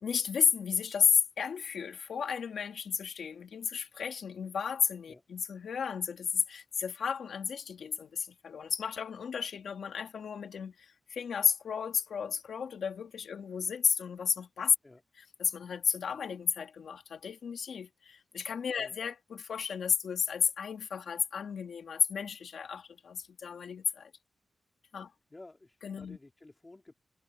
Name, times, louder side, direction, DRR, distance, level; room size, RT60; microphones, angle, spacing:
voice 1, 0.0-10.7 11.1-14.7 15.4-24.1 24.9-25.1 25.8-26.2, left 6 dB, 75° left, 2.6 m, -32 dB
voice 2, 25.0-26.9, left 2 dB, 20° left, 3.3 m, -53 dB
wide cardioid pair, 160°, 0 cm